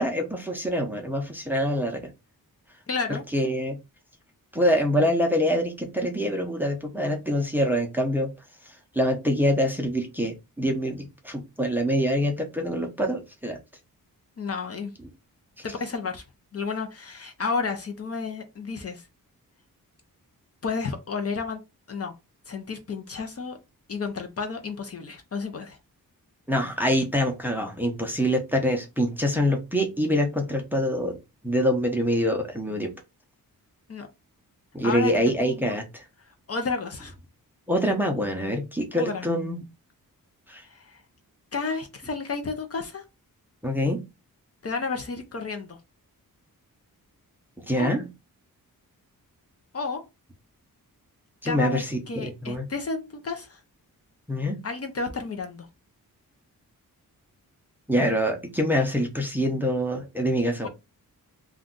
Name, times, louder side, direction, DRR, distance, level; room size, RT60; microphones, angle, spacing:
voice 1, 0.0-2.1 3.3-3.8 4.5-8.3 8.7-13.6 26.5-31.2 31.4-32.9 34.7-36.0 37.7-39.6 40.5-40.6 43.6-44.1 47.7-48.1 51.4-52.7 54.3-54.6 57.9-60.7, equal, 5° right, 0.5 m, -25 dB
voice 2, 2.9-3.2 14.4-14.9 15.6-16.2 16.5-19.1 20.6-21.6 21.9-22.1 22.5-23.6 23.9-25.8 33.9-34.1 34.8-35.1 35.4-35.7 36.3-37.1 38.9-39.3 40.7-41.0 41.5-43.0 44.6-45.8 47.7-47.9 49.7-50.0 51.4-53.6 54.6-55.7 60.6-60.7, left 4 dB, 40° left, 0.5 m, -31 dB
2.5 x 2.3 x 3.7 m
wide cardioid pair, 145°, 36 cm